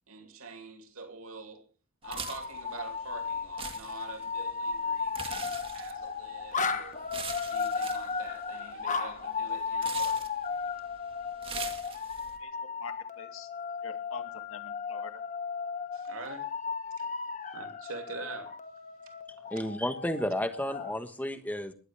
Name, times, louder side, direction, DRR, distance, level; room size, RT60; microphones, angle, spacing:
voice 1, 0.1-1.6 2.0-7.0 7.5-10.3 11.8-12.0 15.9-16.5 17.0-17.1 17.5-18.6 19.6-19.7, right 3 dB, 70° right, 2.9 m, -45 dB
sound 1, 2.0-21.0, left 5 dB, 35° left, 1.3 m, -35 dB
sound 2, 2.0-12.4, right 5 dB, 25° right, 1.9 m, -44 dB
voice 2, 12.8-13.5 13.8-15.1, left 4 dB, 65° left, 2.3 m, -44 dB
voice 3, 19.5-21.7, left 1 dB, 5° left, 1.2 m, -32 dB
20.0 x 14.0 x 3.4 m
head